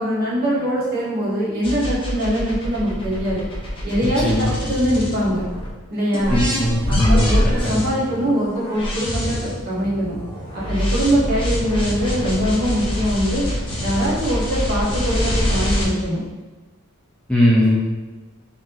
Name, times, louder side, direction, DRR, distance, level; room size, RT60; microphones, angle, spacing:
voice 1, 0.0-3.5 3.8-5.4 5.9-6.4 6.9-10.2 10.5-13.5 13.8-16.2, equal, 40° right, -7 dB, 1.2 m, -22 dB
sound 1, 1.6-5.7 6.1-15.9, left 1 dB, 25° left, 0.8 m, -24 dB
voice 2, 6.3-7.3 7.6-7.7 17.3-17.8, left 1 dB, 5° left, -6 dB, 0.4 m, -18 dB
3.1 x 2.8 x 3.8 m, 1.3 s
head